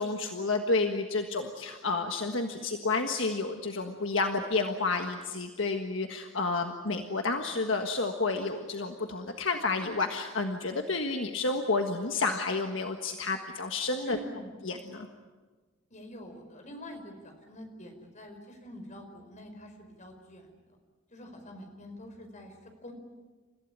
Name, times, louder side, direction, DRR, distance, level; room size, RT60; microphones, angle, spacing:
voice 1, 0.0-14.2 14.6-15.1, left 3 dB, 70° left, 4 dB, 1.6 m, -30 dB
voice 2, 14.0-14.6 15.9-20.8 21.1-22.9, equal, 40° left, 5 dB, 5.1 m, -46 dB
30.0 x 16.0 x 9.9 m, 1.3 s
head